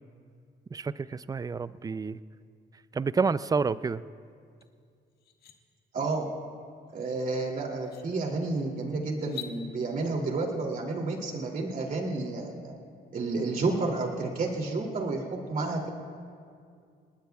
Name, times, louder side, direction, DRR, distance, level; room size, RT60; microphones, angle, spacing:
voice 1, 0.7-2.2 2.9-4.0, right 5 dB, 20° right, 16 dB, 0.4 m, -29 dB
sound 1, 4.6-4.7 5.1-5.6 7.2-7.3 7.8-8.1 9.2-9.6, left 11 dB, 60° left, 1.6 m, -43 dB
voice 2, 5.9-6.3 6.9-12.7 13.1-15.2 15.5-15.9, right 3 dB, 50° right, 0 dB, 2.8 m, -30 dB
29.5 x 19.5 x 2.4 m, 2.3 s
cardioid pair, 95°, 18 cm